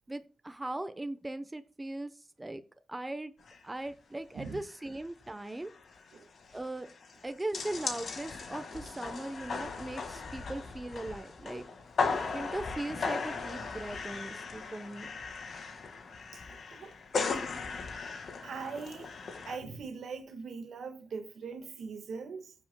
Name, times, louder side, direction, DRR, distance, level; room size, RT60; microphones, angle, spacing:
voice 1, 0.1-2.1 2.4-2.6 2.9-3.3 3.6-5.7 6.5-6.9 7.2-11.6 12.3-15.1, right 1 dB, 15° right, 0.8 m, -39 dB
sound 1, 3.5-3.6 3.9-4.0 4.4-4.7 5.0-5.1 5.4-19.6, left 4 dB, 65° left, 1.8 m, -37 dB
voice 2, 18.4-19.1 19.5-22.5, right 5 dB, 80° right, 1.5 m, -41 dB
15.0 x 7.3 x 2.2 m
cardioid pair, 100°, 0 cm